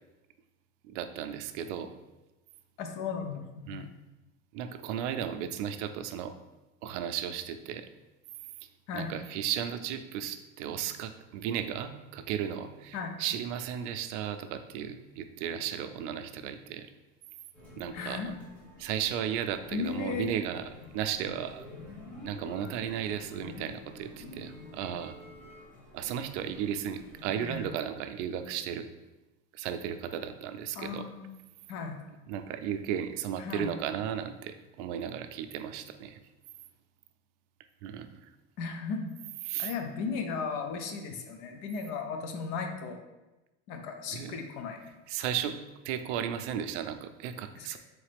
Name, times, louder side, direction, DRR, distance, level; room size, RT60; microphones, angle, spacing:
voice 1, 0.9-1.9 3.7-3.9 4.5-6.3 6.8-7.9 8.9-16.9 17.8-18.2 18.8-21.7 22.2-25.2 25.9-28.9 29.5-31.1 32.3-36.2 37.8-38.2 39.5-39.7 44.1-44.4 45.1-45.6 45.8-47.8, right 9 dB, 85° right, 9 dB, 0.5 m, -35 dB
voice 2, 2.8-4.0 8.9-9.1 12.9-13.1 17.9-18.3 19.7-20.3 27.4-27.7 30.7-31.3 31.7-32.0 33.4-33.7 38.6-39.1 39.6-43.0 43.7-44.8 47.6-47.8, left 5 dB, 50° left, 5 dB, 0.6 m, -36 dB
sound 1, 17.5-27.7, left 1 dB, 5° left, 1.2 m, -49 dB
3.9 x 3.2 x 3.3 m, 1.0 s
cardioid pair, 160°, 34 cm